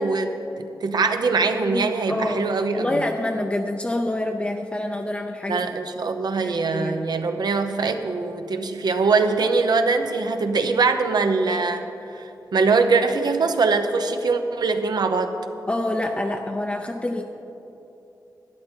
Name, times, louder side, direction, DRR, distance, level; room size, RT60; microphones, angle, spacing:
voice 1, 0.0-3.0 5.5-11.8 12.1-15.3, right 4 dB, 75° right, 7 dB, 0.8 m, -22 dB
voice 2, 1.7-2.5 2.7-5.7 6.0-6.1 6.4-7.0 15.7-17.2, left 1 dB, 15° left, 2 dB, 0.5 m, -27 dB
12.0 x 11.0 x 4.5 m, 2.9 s
wide cardioid pair, 120°, 7 cm